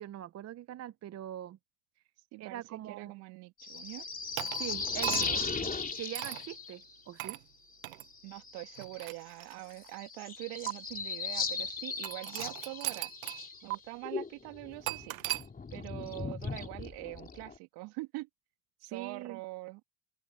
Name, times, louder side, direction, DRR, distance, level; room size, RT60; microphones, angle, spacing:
voice 1, 0.0-1.6 2.4-3.1 4.5-5.3 6.0-7.4 18.9-19.4, right 12 dB, 40° right, 0.9 m, -42 dB
voice 2, 2.3-4.1 5.1-5.8 8.2-13.1 13.6-15.2 15.7-18.3 18.8-19.8, right 23 dB, 65° right, 2.7 m, -44 dB
sound 1, 3.6-6.9 8.1-9.2 9.5-9.6 9.8-13.7 14.0-17.6, left 4 dB, 20° left, 3.1 m, -37 dB
sound 2, 4.4-5.5 6.1-6.5 7.2-7.4 7.8-8.0 8.8-9.9 10.7-10.8 12.0-13.4 13.7-13.8 14.9-15.5, right 17 dB, 90° right, 1.1 m, -38 dB
open air
hypercardioid pair, 85°, 40 cm